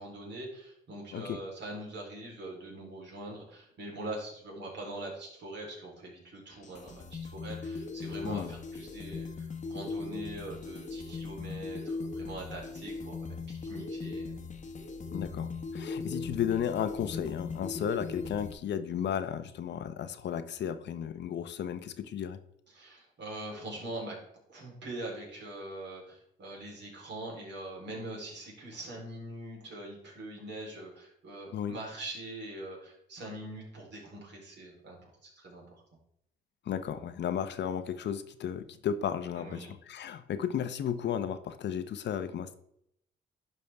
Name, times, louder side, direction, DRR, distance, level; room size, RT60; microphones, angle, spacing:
voice 1, 0.0-14.3 22.7-24.2 24.5-35.6 39.4-39.8, right 1 dB, 65° right, -2 dB, 3.6 m, -43 dB
sound 1, 6.5-18.5, left 4 dB, 35° left, 1.0 m, -39 dB
voice 2, 15.1-22.4 31.5-31.7 36.7-42.6, left 8 dB, 60° left, 11 dB, 0.7 m, -34 dB
11.0 x 5.4 x 3.4 m, 0.75 s
cardioid pair, 90°, 20 cm